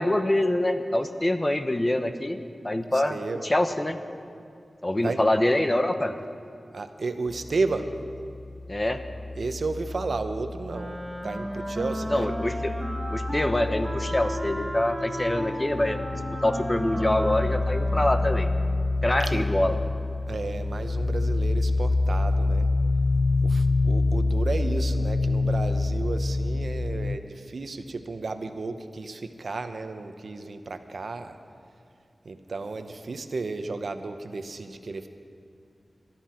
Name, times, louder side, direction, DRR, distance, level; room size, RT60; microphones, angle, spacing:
voice 1, 0.0-3.2 3.4-4.0 4.8-6.1 8.7-9.0 12.1-12.7 13.1-16.0 16.4-18.5 19.0-19.7, left 1 dB, 25° left, 8 dB, 0.8 m, -25 dB
voice 2, 2.9-3.5 5.0-5.2 6.7-7.9 9.4-12.3 19.2-19.5 20.3-22.7 23.4-31.4 32.2-35.1, right 3 dB, 75° right, 8 dB, 0.8 m, -33 dB
sound 1, 7.3-11.1 11.4-27.2, left 2 dB, 75° left, 0.4 m, -27 dB
Wind instrument woodwind instrument, 10.7-18.9, equal, 5° right, 1.7 m, -34 dB
22.0 x 13.0 x 4.4 m, 2.4 s
wide cardioid pair, 80°, 0 cm